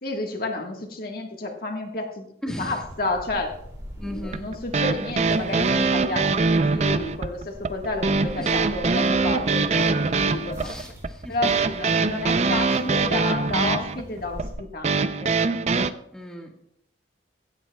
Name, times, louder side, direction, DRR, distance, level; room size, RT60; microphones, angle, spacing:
voice 1, 0.0-2.3 2.6-3.5 4.0-10.7 11.3-15.4, left 2 dB, 55° left, 2 dB, 1.5 m, -31 dB
voice 2, 2.4-2.7 4.0-4.5 8.4-8.6 10.6-11.3 16.1-16.5, equal, 5° left, 0 dB, 1.6 m, -36 dB
sound 1, 2.8-14.5, equal, 20° right, 5.3 m, -43 dB
sound 2, 4.3-15.9, right 4 dB, 40° right, 0.5 m, -23 dB
16.0 x 12.5 x 2.3 m, 0.74 s
head